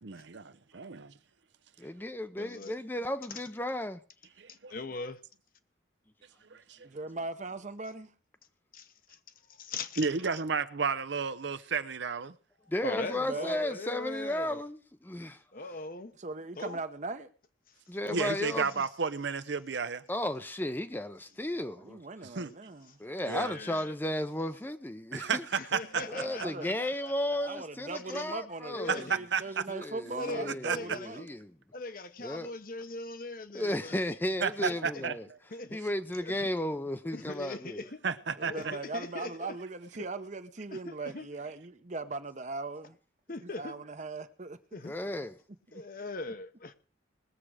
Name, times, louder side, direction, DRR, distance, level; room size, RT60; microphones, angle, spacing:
voice 1, 0.0-1.1 4.4-4.7 6.5-6.9 10.0-12.4 18.1-20.0 22.2-22.5 23.3-23.5 25.1-26.0 28.9-29.6 30.5-30.8 34.4-35.4 38.0-38.7, right 5 dB, 70° right, 0.7 m, -32 dB
voice 2, 1.8-4.0 12.7-15.4 17.9-18.7 20.1-22.0 23.0-25.4 26.1-29.0 29.7-31.5 32.2-32.5 33.5-35.2 35.7-37.8 44.8-45.4, left 1 dB, 10° left, 0.6 m, -34 dB
voice 3, 2.4-2.7 3.3-3.4 4.5-5.2 8.7-9.2 9.6-10.1 12.8-14.6 15.5-16.1 16.6-16.8 18.0-18.7 23.2-23.9 25.5-27.1 28.1-28.2 28.7-29.2 30.2-31.3 31.7-34.0 34.6-35.0 35.5-35.8 36.2-36.5 37.1-38.0 38.4-39.6 40.7-41.3 43.3-43.7 44.7-44.9 45.7-46.7, left 2 dB, 50° left, 0.9 m, -40 dB
voice 4, 6.8-8.1 12.9-13.7 16.2-17.3 21.5-23.0 26.0-26.7 27.3-31.3 38.3-43.0 43.4-44.6 45.0-45.1 45.7-45.8, right 3 dB, 40° right, 0.8 m, -40 dB
20.0 x 7.5 x 4.8 m
head